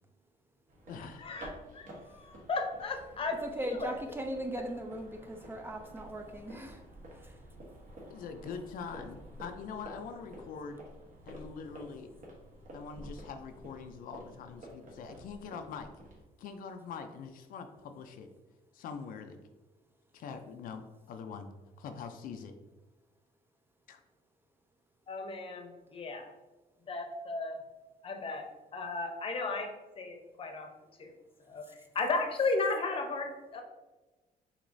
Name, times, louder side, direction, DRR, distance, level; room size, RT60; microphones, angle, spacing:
sound 1, 0.7-16.2, right 1 dB, 60° right, 1.3 m, -50 dB
voice 1, 0.9-1.3 8.1-10.8 11.3-12.1 12.7-15.9 16.4-18.3 18.7-19.4 20.1-21.5 21.8-22.5 23.9-24.0, left 6 dB, 70° left, 6 dB, 0.5 m, -43 dB
voice 2, 1.7-3.4 3.6-3.9 25.1-26.3 26.9-27.6 28.0-28.5 28.7-29.7 30.0-30.7 31.0-31.1 31.5-33.6, left 3 dB, 35° left, 4 dB, 0.7 m, -34 dB
voice 3, 3.4-6.8 7.1-7.4, right 1 dB, 15° right, 4 dB, 0.4 m, -38 dB
6.2 x 2.9 x 2.6 m, 1.2 s
cardioid pair, 120°, 15 cm